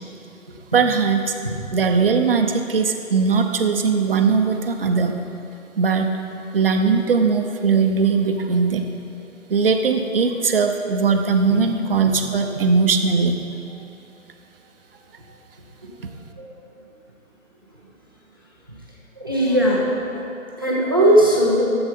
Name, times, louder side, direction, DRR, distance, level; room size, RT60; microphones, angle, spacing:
voice 1, 0.7-1.3 1.7-5.1 5.8-6.2 6.5-8.9 9.5-13.4, right 5 dB, 45° right, 5 dB, 0.8 m, -19 dB
voice 2, 19.2-21.6, right 1 dB, 15° right, -5 dB, 0.6 m, -19 dB
13.0 x 7.7 x 4.3 m, 2.7 s
figure-of-eight pair, 155°, 41 cm